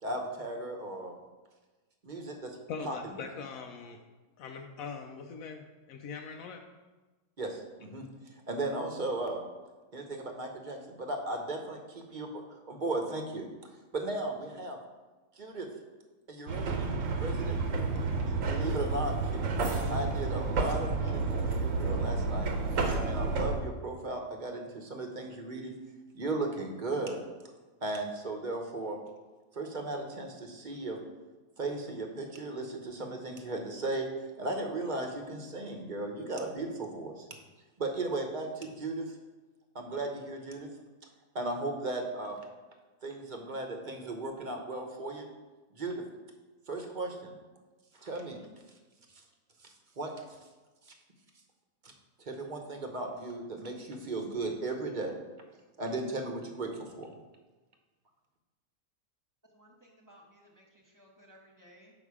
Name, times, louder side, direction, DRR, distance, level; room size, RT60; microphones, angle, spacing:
voice 1, 0.0-1.1 2.0-2.6 2.8-2.9 7.4-8.1 8.5-9.4 9.9-13.5 13.9-14.8 15.3-15.7 16.3-16.9 17.2-17.6 18.3-19.5 19.9-22.5 23.0-25.7 26.1-27.2 27.8-29.0 29.5-31.0 31.6-34.1 34.4-37.2 37.8-39.2 39.7-40.7 41.3-42.4 43.0-45.3 45.7-46.0 46.7-47.3 48.0-48.4 50.0-50.2 52.2-55.2 55.8-57.1, right 2 dB, 40° right, 3 dB, 0.9 m, -36 dB
voice 2, 2.7-4.0 4.4-6.6, left 5 dB, 80° left, 4 dB, 1.0 m, -41 dB
sound 1, 16.5-23.6, right 3 dB, 70° right, 1.2 m, -30 dB
voice 3, 59.5-61.9, equal, 15° right, -2 dB, 1.2 m, -59 dB
7.0 x 5.3 x 4.8 m, 1.2 s
omnidirectional pair, 1.4 m